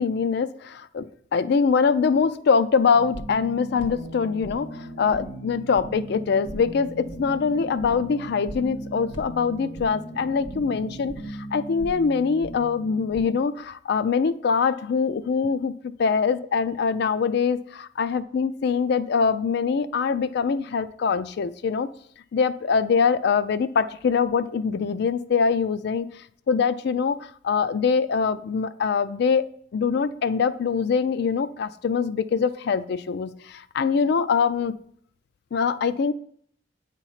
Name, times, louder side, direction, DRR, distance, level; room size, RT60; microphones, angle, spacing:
voice 1, 0.0-15.7 16.0-21.9 22.3-27.2 27.4-29.5 29.7-34.7 35.5-36.1, left 5 dB, 60° left, 13 dB, 0.3 m, -23 dB
sound 1, 2.9-13.3, right 1 dB, 85° left, 1.5 m, -38 dB
sound 2, 3.9-11.3, right 4 dB, 45° right, 0.3 m, -44 dB
8.9 x 3.0 x 5.6 m, 0.63 s
head